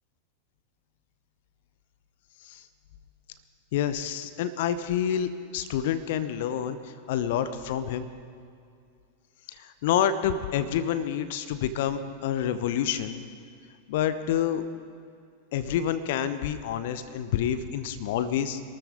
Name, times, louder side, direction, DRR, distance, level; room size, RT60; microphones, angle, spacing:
voice 1, 3.7-8.1 9.5-13.3 13.9-14.6 15.5-18.6, left 9 dB, 50° left, 12 dB, 0.9 m, -28 dB
26.5 x 13.5 x 3.7 m, 2.4 s
figure-of-eight pair, 90°, 0 cm